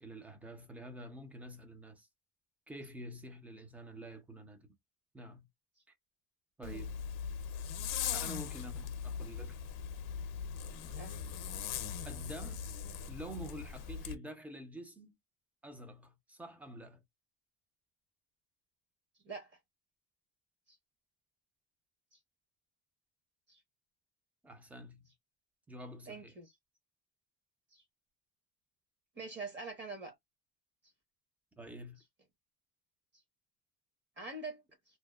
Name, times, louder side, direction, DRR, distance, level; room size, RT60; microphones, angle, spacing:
voice 1, 0.0-2.1 2.7-4.7 5.1-5.5 6.6-6.9 8.1-9.6 12.0-12.6 13.1-15.2 15.6-17.0 24.4-25.1 25.7-26.3 31.6-32.0, right 1 dB, 5° right, 0.4 m, -48 dB
Zipper (clothing), 6.6-14.2, left 7 dB, 65° left, 0.6 m, -40 dB
voice 2, 26.1-26.5 27.7-27.8 29.2-30.1 34.2-34.6, right 3 dB, 30° right, 0.9 m, -44 dB
2.7 x 2.0 x 2.2 m
cardioid pair, 155°, 36 cm